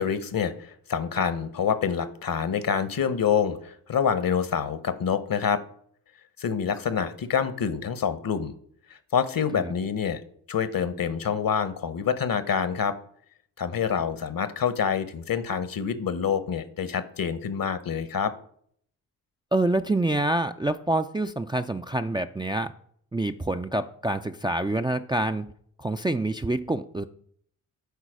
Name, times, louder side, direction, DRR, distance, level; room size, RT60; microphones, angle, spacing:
voice 1, 0.0-5.6 6.4-8.5 9.1-10.2 10.5-12.9 13.6-18.3, left 7 dB, 50° left, 14 dB, 1.0 m, -26 dB
voice 2, 19.5-22.7 23.1-25.5 25.8-27.0, right 2 dB, 10° right, 7 dB, 0.4 m, -26 dB
8.3 x 4.5 x 6.1 m, 0.62 s
supercardioid pair, 40°, 43 cm